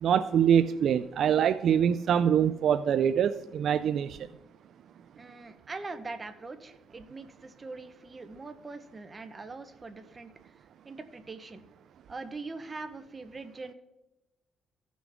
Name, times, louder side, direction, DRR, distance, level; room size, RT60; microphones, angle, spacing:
voice 1, 0.0-4.2, right 8 dB, 65° right, 12 dB, 0.3 m, -24 dB
voice 2, 5.2-10.6 10.8-11.6 12.1-13.7, right 3 dB, 30° right, 9 dB, 0.9 m, -42 dB
15.5 x 6.1 x 3.5 m, 0.98 s
cardioid pair, 90°, 0 cm